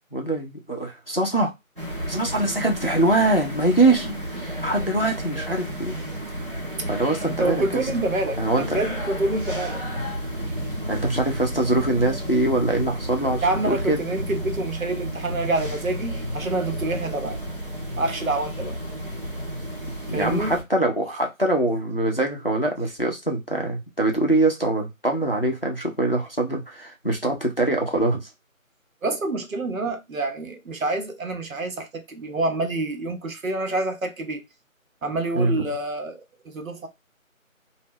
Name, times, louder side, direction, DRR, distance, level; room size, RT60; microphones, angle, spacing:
voice 1, 0.1-1.5 2.1-4.2 4.6-6.0 6.9-7.9 8.4-8.8 10.9-14.0 20.1-28.2 35.4-35.5, right 2 dB, 45° left, 0.5 m, -23 dB
sound 1, 1.8-20.6, equal, 40° right, 0.7 m, -32 dB
voice 2, 7.2-9.8 13.4-17.4 18.0-18.8 20.1-20.6 29.0-34.4 35.0-36.9, right 2 dB, 75° right, 0.8 m, -27 dB
2.1 x 2.1 x 3.4 m
figure-of-eight pair, 180°, 42 cm